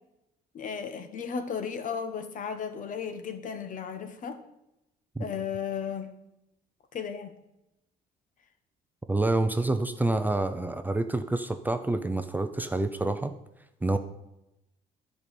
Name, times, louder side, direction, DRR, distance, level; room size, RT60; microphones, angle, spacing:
voice 1, 0.5-4.4 5.2-6.1 6.9-7.3, left 6 dB, 50° left, 9 dB, 1.3 m, -35 dB
voice 2, 9.1-13.3 13.8-14.0, right 2 dB, 10° right, 8 dB, 0.7 m, -27 dB
10.5 x 5.4 x 8.5 m, 0.89 s
cardioid pair, 110°, 17 cm